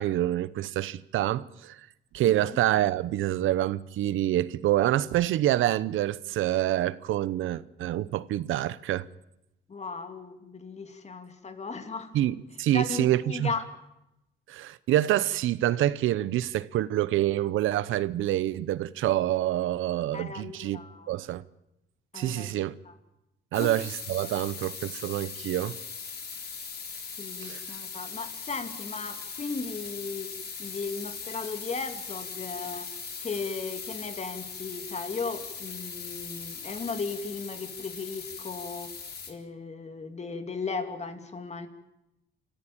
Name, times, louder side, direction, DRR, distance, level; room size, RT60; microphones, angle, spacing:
voice 1, 0.0-1.8 2.1-9.1 12.1-13.5 14.5-20.8 21.1-21.4 22.1-22.7 23.5-25.8 27.4-27.6, right 13 dB, 80° right, 0.8 m, -27 dB
voice 2, 9.7-12.1 12.7-13.7 20.1-21.1 22.1-22.5 22.9-23.0 23.5-23.7 27.2-30.3 30.6-32.9 33.2-38.9 39.3-41.7, left 4 dB, 35° left, 2.7 m, -36 dB
sound 1, 23.5-39.3, left 5 dB, 55° left, 4.0 m, -40 dB
26.5 x 14.5 x 8.9 m
cardioid pair, 90°, 20 cm